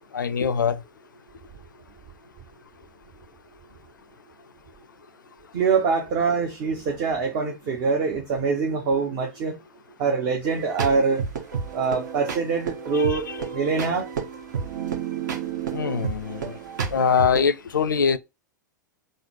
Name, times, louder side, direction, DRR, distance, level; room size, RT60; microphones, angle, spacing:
voice 1, 0.1-0.8 12.9-13.4 15.7-16.6 16.9-18.2, left 6 dB, 75° left, 0.4 m, -23 dB
voice 2, 5.5-9.6 10.0-11.2 11.7-13.2 13.5-14.1, right 5 dB, 40° right, 0.8 m, -24 dB
sound 1, 10.4-17.5, right 7 dB, 65° right, 1.2 m, -31 dB
3.8 x 2.0 x 4.4 m
figure-of-eight pair, 95°, 10 cm